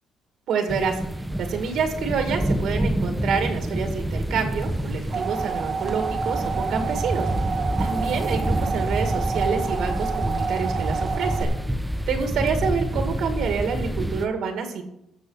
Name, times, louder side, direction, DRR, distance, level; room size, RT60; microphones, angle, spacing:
voice 1, 0.5-1.0 1.4-7.3 7.8-11.6 12.1-14.8, right 6 dB, 70° right, 5 dB, 2.0 m, -27 dB
sound 1, 0.7-14.3, right 1 dB, 5° right, 0.6 m, -27 dB
sound 2, 4.7-11.4, right 5 dB, 40° right, 1.1 m, -29 dB
15.5 x 7.0 x 4.8 m, 0.80 s
cardioid pair, 135°, 0 cm